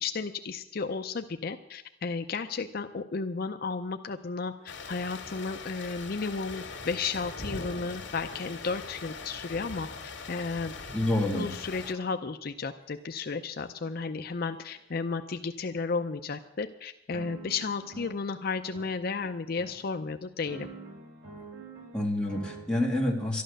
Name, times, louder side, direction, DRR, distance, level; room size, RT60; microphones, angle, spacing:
voice 1, 0.0-4.5 4.9-9.9 10.3-10.7 11.3-20.7, left 4 dB, 55° left, 7 dB, 0.6 m, -33 dB
sound 1, 4.1-4.2 4.6-9.0 10.3-10.5 11.1-11.3 11.8-12.2 12.9-13.2 13.8-14.1 14.6-14.8 15.5-15.6 16.3-16.4 17.1-22.6, right 3 dB, 85° right, 3.3 m, -49 dB
sound 2, 4.7-11.9, left 4 dB, 70° left, 2.0 m, -41 dB
voice 2, 10.9-11.5 21.9-23.4, left 1 dB, 5° left, -2 dB, 2.1 m, -28 dB
12.5 x 11.5 x 6.5 m, 0.85 s
head